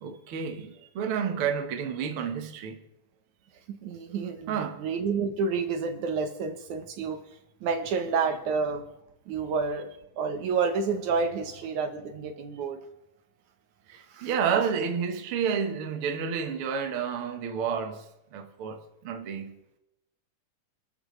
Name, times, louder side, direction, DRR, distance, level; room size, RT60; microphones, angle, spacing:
voice 1, 0.0-2.8 4.5-4.8 13.9-19.5, right 7 dB, 50° right, 1.9 m, -30 dB
voice 2, 3.7-7.2 7.6-8.9 9.3-9.9 10.2-12.8 14.1-14.3, right 5 dB, 70° right, 2.5 m, -29 dB
27.0 x 12.5 x 3.3 m
omnidirectional pair, 3.6 m